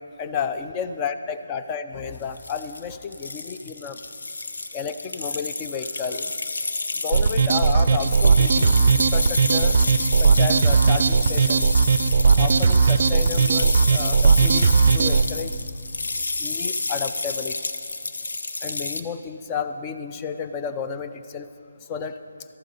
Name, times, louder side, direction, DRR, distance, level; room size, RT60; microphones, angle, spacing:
voice 1, 0.2-4.0 4.7-6.4 6.9-9.8 10.1-11.7 12.4-15.6 16.4-17.6 18.6-21.5 21.9-22.2, left 6 dB, 20° left, 8 dB, 0.4 m, -31 dB
sound 1, 2.2-19.0, left 3 dB, 75° left, 0.8 m, -30 dB
sound 2, 7.1-15.3, right 5 dB, 50° right, 0.5 m, -18 dB
13.5 x 12.0 x 5.2 m, 2.8 s
hypercardioid pair, 170°, 0 cm